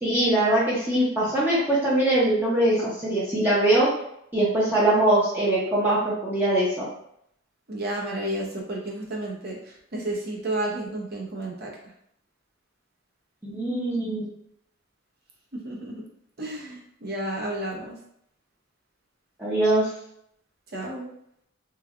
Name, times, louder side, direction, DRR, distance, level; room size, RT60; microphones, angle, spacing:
voice 1, 0.0-3.9 4.3-6.9 13.4-14.2 19.4-19.9, right 1 dB, 10° right, -8 dB, 0.7 m, -22 dB
voice 2, 7.7-11.8 15.5-16.0 16.4-18.0 20.7-21.1, right 1 dB, 50° right, -3 dB, 0.8 m, -32 dB
3.2 x 2.3 x 3.5 m, 0.74 s
head